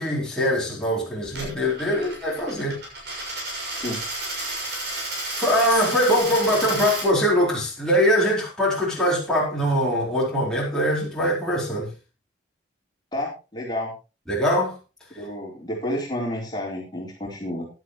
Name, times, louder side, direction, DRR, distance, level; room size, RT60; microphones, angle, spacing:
voice 1, 0.0-2.8 5.4-11.9 14.3-14.7, equal, 5° left, 4.7 m, -22 dB
Coin (dropping), 1.2-7.1, right 2 dB, 60° right, 6.6 m, -32 dB
voice 2, 13.1-13.9 15.2-17.7, left 1 dB, 20° left, 4.3 m, -30 dB
16.0 x 11.0 x 3.2 m
head